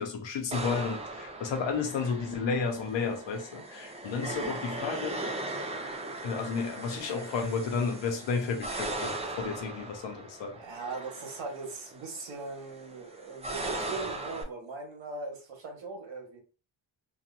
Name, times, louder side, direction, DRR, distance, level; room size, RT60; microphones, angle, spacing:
voice 1, 0.0-5.2 6.2-10.6, left 5 dB, 70° left, 0.9 m, -32 dB
sound 1, 0.5-14.4, right 2 dB, 15° right, 0.5 m, -39 dB
voice 2, 10.5-16.4, right 3 dB, 70° right, 1.3 m, -40 dB
2.9 x 2.5 x 2.5 m
cardioid pair, 95°, 46 cm